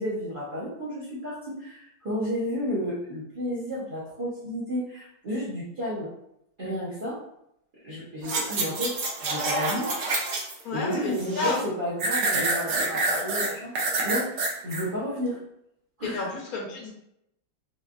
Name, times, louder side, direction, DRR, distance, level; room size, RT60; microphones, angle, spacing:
voice 1, 0.0-6.1 6.6-7.2 7.8-8.9 9.2-9.9 10.7-13.7 14.0-14.3 14.6-15.4 16.0-16.3, equal, 55° right, -9 dB, 0.5 m, -32 dB
sound 1, 8.2-10.6 10.9-11.6 12.0-14.8 15.3-15.4, right 2 dB, 80° right, 1.6 m, -27 dB
voice 2, 10.6-11.6 16.0-16.9, left 4 dB, 60° left, -3 dB, 1.0 m, -31 dB
4.3 x 2.3 x 2.4 m, 0.78 s
omnidirectional pair, 2.3 m